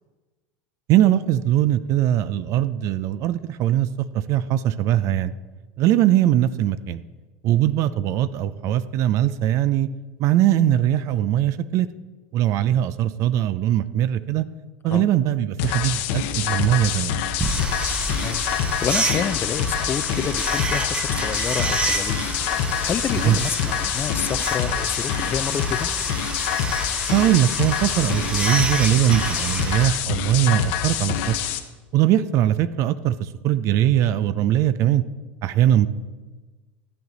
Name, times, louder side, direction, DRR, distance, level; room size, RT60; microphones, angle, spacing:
voice 1, 0.9-3.9 4.1-5.3 5.8-7.0 7.4-9.9 10.2-11.9 12.3-14.5 14.8-17.2 23.2-23.4 27.1-31.4 31.9-35.0 35.4-35.9, right 12 dB, 50° right, 15 dB, 0.5 m, -20 dB
sound 1, 15.6-31.6, left 9 dB, 65° left, 0.9 m, -26 dB
sound 2, 17.4-29.9, right 3 dB, 15° right, 0.9 m, -29 dB
voice 2, 18.2-22.3 22.5-25.9, left 8 dB, 30° left, 13 dB, 0.5 m, -29 dB
12.5 x 7.9 x 4.0 m, 1.3 s
supercardioid pair, 105°, 7 cm